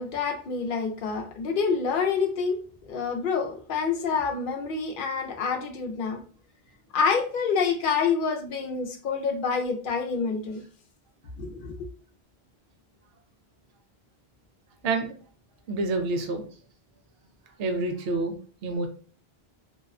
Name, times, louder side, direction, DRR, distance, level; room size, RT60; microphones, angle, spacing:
voice 1, 0.0-2.6 2.9-6.2 6.9-10.6 11.4-11.9, left 5 dB, 60° left, 4 dB, 0.7 m, -27 dB
voice 2, 15.7-16.4 17.6-18.4 18.6-18.9, right 3 dB, 75° right, 5 dB, 0.8 m, -27 dB
2.6 x 2.1 x 2.4 m, 0.42 s
omnidirectional pair, 1.1 m